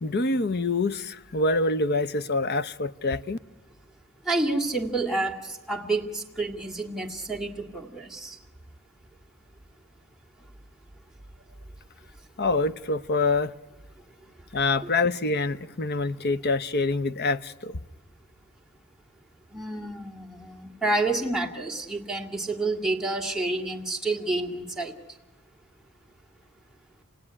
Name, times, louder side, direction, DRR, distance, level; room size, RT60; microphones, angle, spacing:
voice 1, 0.0-3.4 12.4-13.5 14.5-17.8, left 3 dB, 50° left, 0.8 m, -26 dB
voice 2, 4.3-8.4 19.5-24.9, right 2 dB, ahead, 2.3 m, -29 dB
29.0 x 18.0 x 9.9 m
head